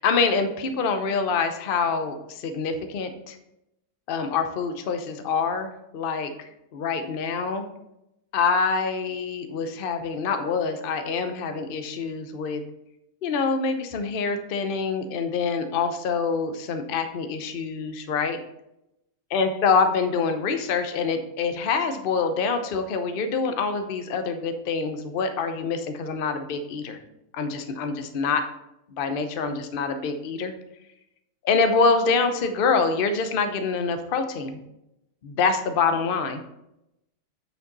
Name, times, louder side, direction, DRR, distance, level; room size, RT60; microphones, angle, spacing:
voice 1, 0.0-3.4 4.1-7.6 8.3-12.6 13.2-18.4 19.3-27.0 27.3-28.4 29.0-30.5 31.4-34.6 35.2-36.4, left 5 dB, 50° left, 7 dB, 0.7 m, -25 dB
9.0 x 5.0 x 3.9 m, 0.86 s
omnidirectional pair, 1.7 m